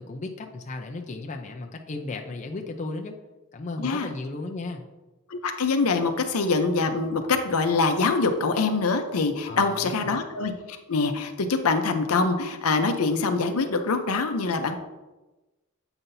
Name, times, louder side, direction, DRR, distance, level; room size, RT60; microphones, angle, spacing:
voice 1, 0.0-3.1 3.5-4.8 9.5-10.2, left 2 dB, 35° left, 3 dB, 0.5 m, -35 dB
voice 2, 3.8-4.1 5.3-10.5 10.9-14.8, left 4 dB, 85° left, 6 dB, 0.6 m, -24 dB
7.9 x 5.7 x 2.7 m, 1.1 s
head